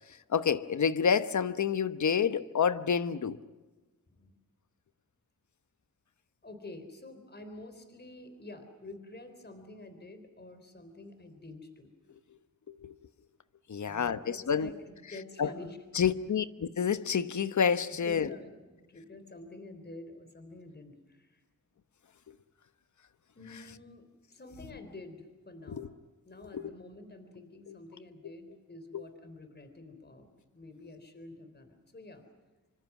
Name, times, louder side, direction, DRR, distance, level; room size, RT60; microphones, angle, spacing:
voice 1, 0.3-3.4 12.7-12.9 13.7-14.7 15.4-15.5 15.9-18.3 25.7-25.9 26.5-26.6 27.7-27.8 28.9-29.0, left 7 dB, 60° left, 1.1 m, -28 dB
voice 2, 6.4-11.9 13.9-15.8 17.9-21.4 23.4-26.0 26.2-32.2, left 2 dB, 30° left, 3.8 m, -48 dB
26.0 x 25.0 x 6.1 m
wide cardioid pair, 100°, 33 cm